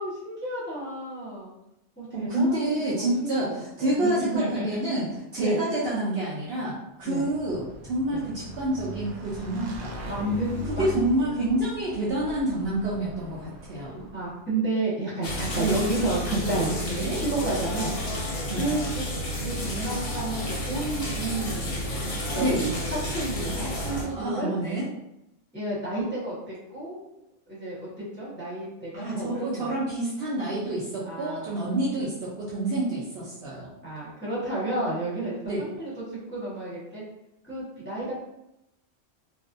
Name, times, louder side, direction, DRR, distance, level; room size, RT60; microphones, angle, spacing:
voice 1, 0.0-1.5 2.0-4.7 5.4-5.6 7.0-7.2 8.1-8.2 10.0-10.9 13.8-17.9 18.5-19.0 19.4-21.7 22.0-24.5 25.5-27.1 27.5-29.8 31.0-31.7 33.8-37.0 37.4-38.2, right 2 dB, 10° left, -10 dB, 0.8 m, -31 dB
voice 2, 2.1-10.0 10.8-14.0 15.6-15.8 16.8-17.2 18.5-18.6 22.4-22.7 24.0-24.9 28.9-33.7 35.5-35.6, right 1 dB, 60° right, -6 dB, 0.7 m, -28 dB
Motorcycle / Engine, 7.1-14.4, equal, 85° right, 1.0 m, -40 dB
sound 1, 15.2-24.0, equal, 60° left, 0.7 m, -31 dB
2.4 x 2.0 x 2.5 m, 0.85 s
omnidirectional pair, 1.3 m